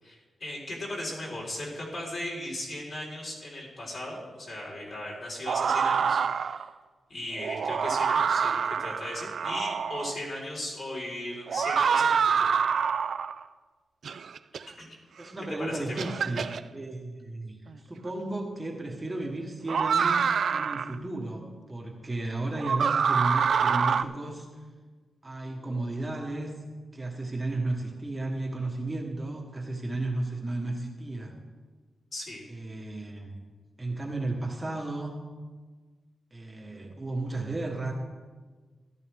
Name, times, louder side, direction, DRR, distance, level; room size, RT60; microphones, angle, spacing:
voice 1, 0.0-6.7 7.1-12.5 14.8-14.9 15.6-16.1 32.1-32.4, left 1 dB, 50° left, -4 dB, 4.1 m, -37 dB
sound 1, 5.5-6.7 7.4-10.2 11.5-13.4 14.0-14.6 15.4-15.5 16.0-16.6 18.1-18.2 19.7-20.9 22.6-24.0, right 6 dB, 60° right, 0.4 m, -26 dB
voice 2, 15.2-24.5 25.2-26.5 26.9-31.4 32.5-33.3 33.8-35.2 36.3-37.9, right 2 dB, 15° right, 0 dB, 1.2 m, -34 dB
14.5 x 12.5 x 3.5 m, 1.4 s
wide cardioid pair, 170°, 0 cm